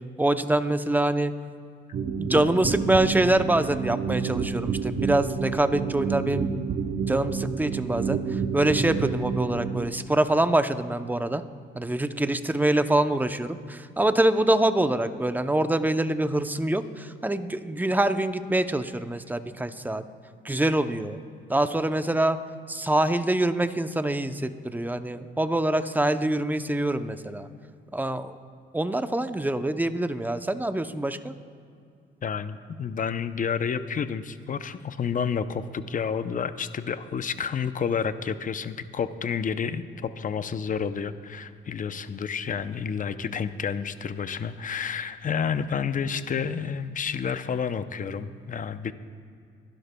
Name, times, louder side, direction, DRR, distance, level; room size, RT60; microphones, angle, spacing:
voice 1, 0.2-1.3 2.2-6.5 7.1-11.4 11.8-20.0 20.4-21.2 21.5-22.4 22.7-27.5 27.9-28.4 28.7-31.3, right 1 dB, 10° right, 10 dB, 0.6 m, -25 dB
sound 1, 1.9-9.9, right 6 dB, 55° right, 0.9 m, -29 dB
voice 2, 32.2-48.9, left 6 dB, 40° left, 12 dB, 0.6 m, -30 dB
22.5 x 12.0 x 2.2 m, 2.3 s
cardioid pair, 95°, 21 cm